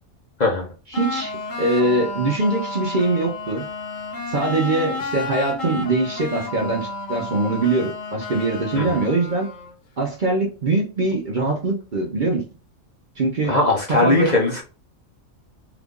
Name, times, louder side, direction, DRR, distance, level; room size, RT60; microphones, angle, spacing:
sound 1, 0.9-9.7, left 3 dB, 85° left, 1.2 m, -31 dB
voice 1, 0.9-3.7 4.3-9.5 10.0-12.4 13.2-13.6 13.9-14.3, right 2 dB, 50° right, 0 dB, 0.7 m, -22 dB
voice 2, 13.4-14.6, left 2 dB, 45° left, -2 dB, 0.7 m, -19 dB
2.9 x 2.4 x 3.5 m, 0.33 s
omnidirectional pair, 1.3 m